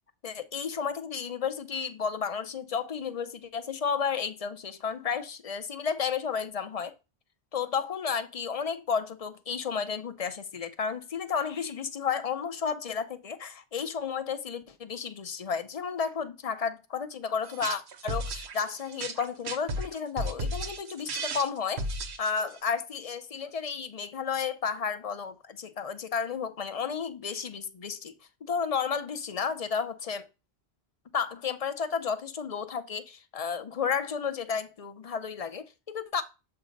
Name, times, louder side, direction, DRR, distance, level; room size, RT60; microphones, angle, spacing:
voice 1, 0.2-7.0 7.5-28.1 28.4-30.3 31.1-36.2, left 6 dB, 45° left, 0.6 m, -32 dB
sound 1, 17.4-22.6, right 1 dB, 90° right, 1.1 m, -34 dB
7.2 x 2.7 x 5.1 m
omnidirectional pair, 1.1 m